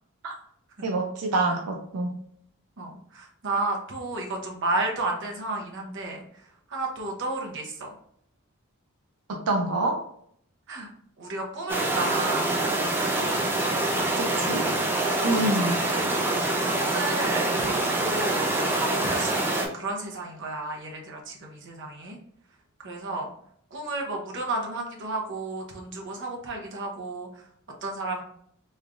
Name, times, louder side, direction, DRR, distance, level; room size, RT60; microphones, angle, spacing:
voice 1, 0.8-2.2 9.3-10.0 14.2-14.6 15.2-15.7, right 2 dB, 85° right, 2 dB, 0.4 m, -26 dB
voice 2, 2.8-6.4 6.7-7.9 10.7-10.9 11.2-12.5 14.2-14.8 15.3-22.2 22.8-23.3 23.7-27.4 27.8-28.2, right 2 dB, 55° right, 0 dB, 0.8 m, -32 dB
sound 1, 11.7-19.7, right 2 dB, 10° right, 0.5 m, -25 dB
3.4 x 3.2 x 2.5 m, 0.68 s
head